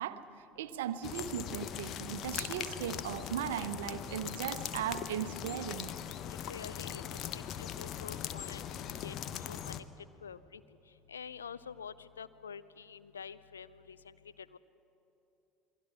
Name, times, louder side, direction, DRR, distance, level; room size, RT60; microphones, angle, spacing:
voice 1, 0.0-5.9, right 10 dB, 70° right, 13 dB, 0.8 m, -38 dB
sound 1, 1.0-9.8, left 9 dB, 50° left, 0.9 m, -40 dB
voice 2, 6.4-7.0 7.3-9.1 9.5-9.8 10.2-10.6 11.1-14.1 14.5-14.6, left 7 dB, 80° left, 15 dB, 0.5 m, -47 dB
27.5 x 22.0 x 5.8 m, 3.0 s
figure-of-eight pair, 65°, 0 cm